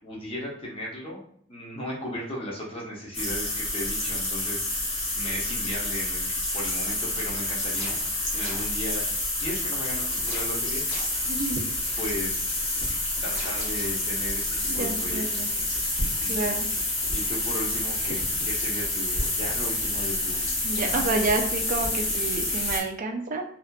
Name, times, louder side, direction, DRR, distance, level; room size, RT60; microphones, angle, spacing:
voice 1, 0.0-1.2 1.5-4.8 5.1-6.3 6.5-9.0 9.4-11.2 11.9-12.9 13.2-15.5 16.0-16.4 17.1-20.5 20.8-21.1, equal, 30° left, -3 dB, 0.7 m, -36 dB
sound 1, 3.1-22.8, left 2 dB, 75° left, 0.9 m, -28 dB
sound 2, 7.8-8.1 8.4-8.8 10.3-11.2 13.3-13.6, left 1 dB, 50° left, 1.0 m, -38 dB
voice 2, 11.3-11.6 14.7-15.5 16.3-16.7 20.6-23.4, right 3 dB, 40° right, 4 dB, 0.3 m, -29 dB
2.5 x 2.4 x 2.2 m, 0.65 s
head